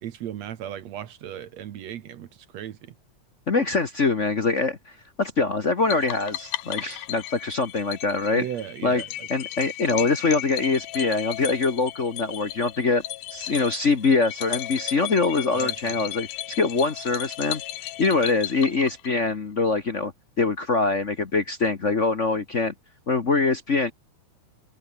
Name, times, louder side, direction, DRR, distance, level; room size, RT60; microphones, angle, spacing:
voice 1, 0.0-2.9 8.3-9.3 15.5-16.0, right 10 dB, 65° right, 2.2 m, -36 dB
voice 2, 3.5-8.4 8.8-9.0 9.3-13.0 13.3-17.6 18.0-20.1 20.4-22.7 23.1-23.9, left 3 dB, 50° left, 0.9 m, -24 dB
sound 1, 5.9-19.3, left 14 dB, 90° left, 2.6 m, -35 dB
omnidirectional pair, 3.6 m